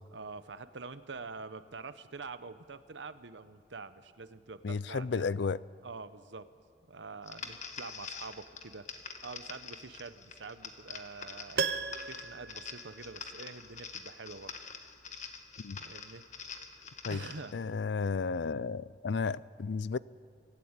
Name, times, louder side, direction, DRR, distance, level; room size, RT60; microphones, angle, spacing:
voice 1, 0.1-5.3 5.8-6.5 6.9-8.9 9.2-14.5 15.8-16.2 17.1-17.6, right 4 dB, 85° right, 13 dB, 0.9 m, -46 dB
voice 2, 4.6-5.6 15.6-15.8 17.0-17.2 17.5-20.0, left 4 dB, 75° left, 20 dB, 0.5 m, -33 dB
sound 1, 7.2-17.5, left 6 dB, 40° left, 1.5 m, -46 dB
Piano, 11.6-13.6 13.9-14.0, right 5 dB, 60° right, 0.6 m, -36 dB
24.0 x 13.5 x 8.9 m, 2.2 s
head